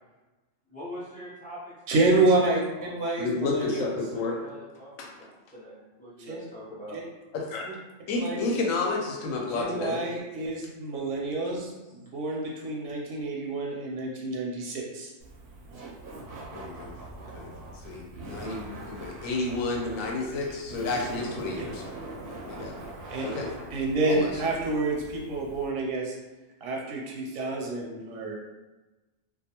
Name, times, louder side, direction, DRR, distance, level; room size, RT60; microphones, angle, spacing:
voice 1, 0.7-1.7 2.0-2.1 2.4-3.0 4.1-7.0 11.4-11.5, equal, 10° left, -8 dB, 0.5 m, -44 dB
voice 2, 1.9-3.9 6.2-6.4 6.9-7.0 8.2-8.4 9.5-15.1 23.1-23.2 23.7-26.1 26.6-28.3, right 2 dB, 85° right, -2 dB, 1.0 m, -28 dB
voice 3, 3.2-4.4 5.0-5.1 7.3-7.7 8.1-10.0 16.5-16.9 17.3-17.5 17.8-21.8 22.5-22.8 23.2-23.5 24.1-24.3, left 3 dB, 85° left, 0 dB, 1.0 m, -31 dB
Laughter, 15.2-25.7, right 2 dB, 60° right, 0.7 m, -42 dB
2.4 x 2.2 x 2.8 m, 1.1 s
omnidirectional pair, 1.3 m